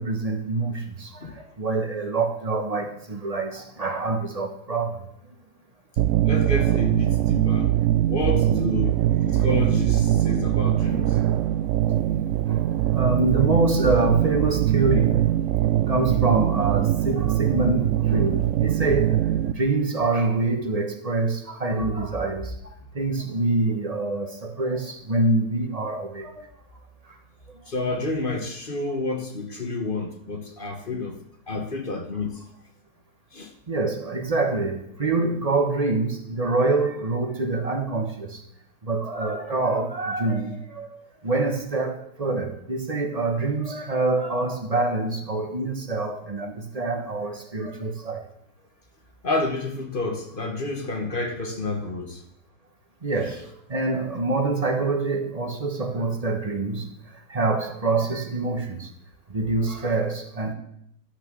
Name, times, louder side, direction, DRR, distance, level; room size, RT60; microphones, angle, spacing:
voice 1, 0.0-5.0 8.5-8.8 9.3-9.4 11.9-12.0 12.4-12.6 12.9-15.3 15.9-19.2 19.5-22.5 22.9-26.5 30.9-31.0 31.5-31.6 33.7-38.4 38.8-48.2 53.0-53.4 53.7-56.9 57.3-58.9 59.3-60.5, right 3 dB, 25° right, 1.0 m, -25 dB
sound 1, 6.0-19.5, right 12 dB, 70° right, 0.7 m, -22 dB
voice 2, 6.2-7.7 8.0-11.2 27.7-31.2 31.5-32.4 33.3-33.5 49.2-52.2, left 2 dB, 35° left, 1.0 m, -29 dB
12.0 x 6.1 x 6.9 m
omnidirectional pair, 1.9 m